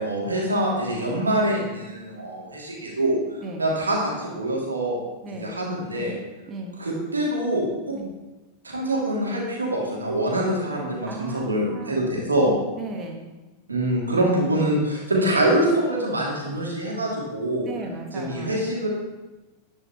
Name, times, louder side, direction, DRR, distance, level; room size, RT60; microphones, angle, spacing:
voice 1, 0.0-3.2 3.6-5.0 5.4-6.1 6.8-8.0 8.6-12.5 13.7-17.7 18.1-18.9, right 1 dB, 80° right, -3 dB, 2.7 m, -24 dB
voice 2, 6.5-6.8 7.9-8.1 11.0-12.0 12.8-13.2 17.6-18.6, right 3 dB, 25° right, 2 dB, 1.6 m, -36 dB
11.0 x 9.7 x 3.1 m, 1.1 s
figure-of-eight pair, 90°, 0 cm